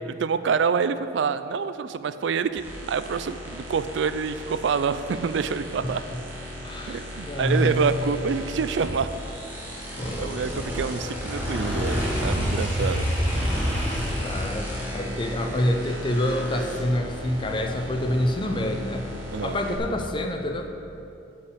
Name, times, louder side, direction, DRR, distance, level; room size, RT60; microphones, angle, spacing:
voice 1, 0.0-6.0 6.9-9.1 10.2-13.1 19.3-19.6, right 5 dB, 75° right, 12 dB, 0.4 m, -27 dB
sound 1, 2.6-19.8, equal, 10° right, 1.5 m, -35 dB
voice 2, 5.8-6.2 6.6-8.0 10.0-10.7 12.7-12.9 13.6-19.1 19.4-20.7, left 1 dB, 25° left, 5 dB, 0.6 m, -27 dB
sound 2, 9.0-17.4 17.8-18.2, equal, 5° left, 2.0 m, -30 dB
8.2 x 5.6 x 7.8 m, 2.7 s
head